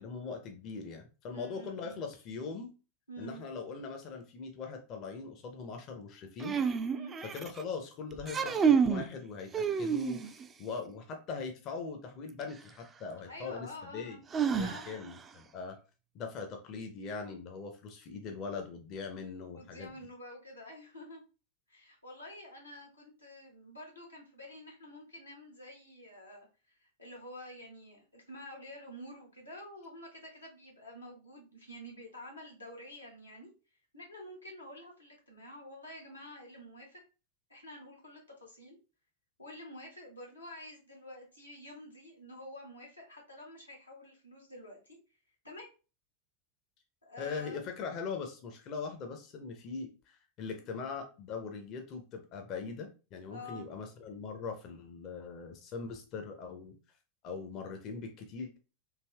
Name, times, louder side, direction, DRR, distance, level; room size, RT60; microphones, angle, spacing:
voice 1, 0.0-2.7 3.2-6.6 7.3-14.2 14.5-15.8 16.1-19.9 47.2-56.7 57.2-58.6, left 5 dB, 40° left, 4 dB, 0.5 m, -41 dB
voice 2, 1.3-2.0 3.1-3.4 6.9-7.1 13.3-14.2 14.6-14.9 19.5-21.2 21.7-33.5 33.9-37.0 37.5-38.8 39.4-45.0 45.4-45.7 47.0-47.7 53.3-53.6, left 1 dB, 90° left, -1 dB, 0.9 m, -48 dB
sound 1, 6.4-7.6 8.2-9.1 9.5-10.4 12.4-12.5 14.3-15.2, right 6 dB, 25° right, 0.3 m, -29 dB
3.3 x 2.6 x 2.2 m, 0.34 s
figure-of-eight pair, 85°, 0 cm